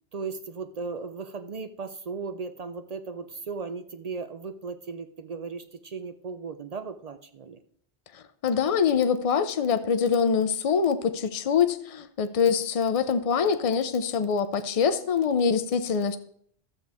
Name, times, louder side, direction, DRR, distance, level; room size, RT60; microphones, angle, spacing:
voice 1, 0.1-7.6, right 4 dB, 50° right, 10 dB, 0.4 m, -36 dB
voice 2, 8.1-16.2, left 6 dB, 40° left, 10 dB, 0.6 m, -24 dB
13.0 x 7.7 x 3.5 m, 0.62 s
omnidirectional pair, 1.2 m